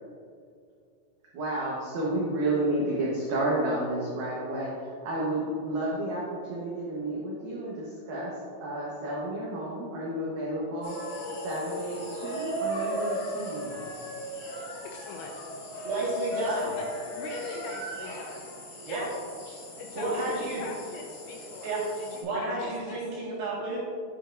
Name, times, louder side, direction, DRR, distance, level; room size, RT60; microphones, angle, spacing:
voice 1, 1.3-11.0 11.3-13.9, right 1 dB, 80° right, -6 dB, 2.0 m, -31 dB
sound 1, 10.8-22.2, equal, 50° left, 2.1 m, -37 dB
voice 2, 14.9-15.3 16.5-16.9 17.1-18.5 18.8-19.1 19.8-23.0, left 4 dB, 85° left, 1 dB, 2.6 m, -42 dB
voice 3, 15.8-16.7 17.5-17.6 18.8-19.1 20.0-20.6 21.6-21.9 22.2-23.8, right 2 dB, 65° right, -6 dB, 3.4 m, -31 dB
9.5 x 7.1 x 2.5 m, 2.3 s
omnidirectional pair, 5.7 m